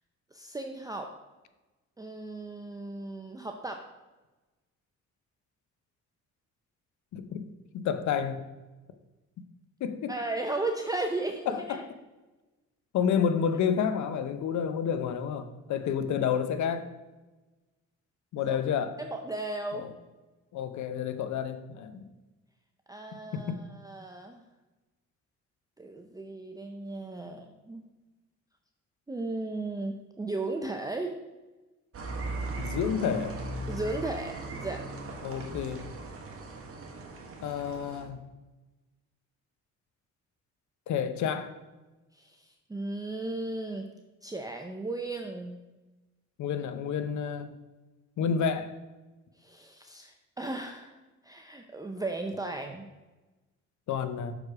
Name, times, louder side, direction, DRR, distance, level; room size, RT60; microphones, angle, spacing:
voice 1, 0.3-1.1 2.0-3.8 10.1-11.8 18.4-18.6 19.0-19.8 22.9-24.4 25.8-27.8 29.1-31.2 33.7-34.8 42.1-43.9 44.2-45.6 49.4-51.0 51.2-52.9, right 2 dB, 10° right, 3 dB, 0.5 m, -35 dB
voice 2, 7.1-7.5 7.7-8.4 9.8-10.1 11.5-11.9 12.9-16.9 18.3-18.9 19.8-19.9 20.5-22.1 23.1-23.6 32.6-33.4 35.2-35.8 37.4-38.2 40.9-41.5 46.4-47.5 48.2-48.7 53.9-54.3, left 7 dB, 70° left, 10 dB, 0.7 m, -30 dB
sound 1, 31.9-38.0, right 2 dB, 50° right, 1.4 m, -38 dB
6.3 x 5.0 x 4.7 m, 1.1 s
cardioid pair, 90°, 30 cm